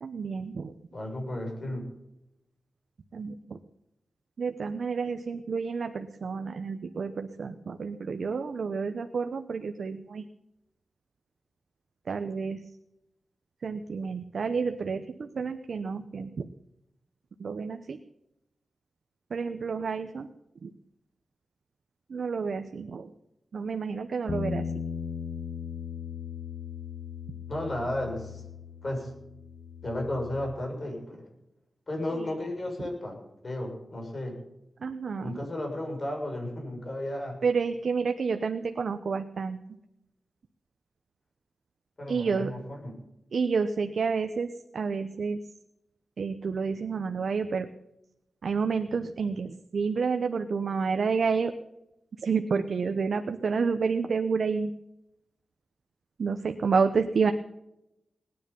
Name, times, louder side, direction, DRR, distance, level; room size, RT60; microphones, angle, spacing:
voice 1, 0.0-0.7 3.1-3.6 4.4-10.2 12.1-12.6 13.6-16.5 17.4-18.0 19.3-20.3 20.6-20.7 22.1-23.1 23.5-24.6 34.8-35.4 37.4-39.6 42.1-42.5 43.3-44.5 44.7-45.4 46.2-47.7 48.4-51.5 52.2-54.7 56.2-57.3, right 5 dB, 75° right, 7 dB, 0.9 m, -29 dB
voice 2, 0.9-1.9 27.5-28.4 28.8-29.1 29.8-31.3 31.9-33.2 33.4-34.4 35.2-37.4 42.0-43.0, left 1 dB, 45° left, 1 dB, 7.1 m, -33 dB
Bass guitar, 24.3-30.5, left 6 dB, 60° left, 0.8 m, -37 dB
20.0 x 10.0 x 5.4 m, 0.85 s
wide cardioid pair, 75°, 0 cm